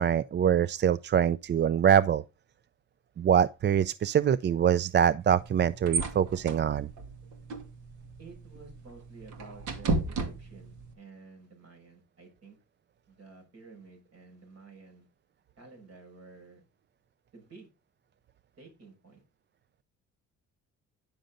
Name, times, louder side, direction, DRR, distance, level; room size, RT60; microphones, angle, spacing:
voice 1, 0.0-2.2 3.2-6.9, right 9 dB, 40° right, 0.4 m, -24 dB
sound 1, 5.2-10.9, right 3 dB, 75° right, 2.3 m, -35 dB
voice 2, 8.2-12.6 13.1-15.1 15.6-16.6 17.3-17.7 18.6-19.2, right 4 dB, 55° right, 5.8 m, -52 dB
10.5 x 6.5 x 3.8 m
cardioid pair, 90°, 30 cm